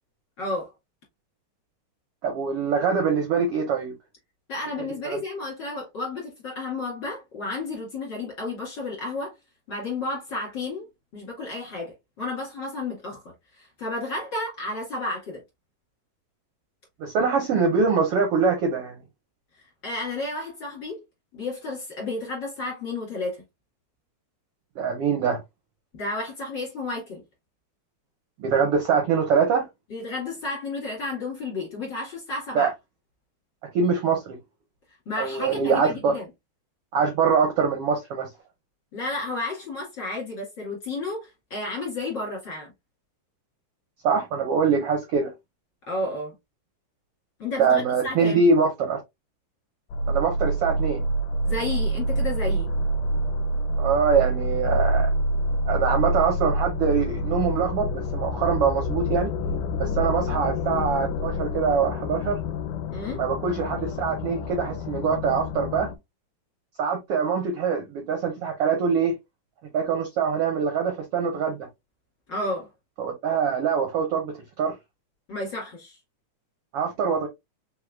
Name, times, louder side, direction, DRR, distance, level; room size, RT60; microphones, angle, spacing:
voice 1, 0.4-0.7 4.5-9.3 9.7-10.8 11.1-15.4 19.5-21.0 21.3-23.4 25.9-27.2 29.9-32.7 35.1-36.3 38.9-42.7 45.9-46.3 47.4-48.4 51.4-52.7 62.9-63.2 72.3-72.7 75.3-76.0, left 2 dB, 40° left, 2.0 m, -32 dB
voice 2, 2.2-3.9 5.0-5.2 17.0-19.0 24.8-25.4 28.4-29.7 32.5-32.7 33.7-34.4 35.2-36.1 36.9-38.3 44.0-45.3 47.6-49.0 50.1-51.0 53.8-55.1 55.7-59.3 59.8-62.4 63.2-65.9 66.8-69.1 69.7-71.6 73.0-74.7 76.7-77.3, right 5 dB, 75° right, 1.4 m, -23 dB
sound 1, 49.9-66.0, equal, 80° left, 1.9 m, -27 dB
4.7 x 3.6 x 2.3 m
omnidirectional pair, 3.8 m